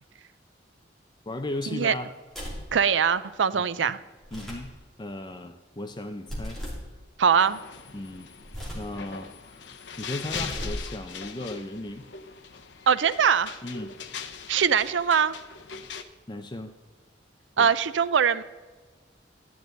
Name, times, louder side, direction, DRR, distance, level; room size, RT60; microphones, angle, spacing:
voice 1, 1.3-2.1 3.5-3.7 4.3-4.7 5.0-6.6 7.9-8.3 8.7-9.6 10.0-12.0 13.6-13.9 16.3-16.7 17.6-17.7, left 1 dB, 25° left, 7 dB, 0.6 m, -36 dB
sound 1, 2.3-2.7 4.2-4.7 6.3-6.9 8.4-8.9 10.2-10.9, equal, ahead, 2.8 m, -36 dB
voice 2, 2.7-4.0 7.2-7.6 12.9-13.5 14.5-15.3 17.6-18.4, right 7 dB, 75° right, 15 dB, 0.5 m, -22 dB
sound 2, 7.4-16.0, left 6 dB, 65° left, 0.8 m, -41 dB
12.0 x 10.5 x 4.0 m, 1.4 s
head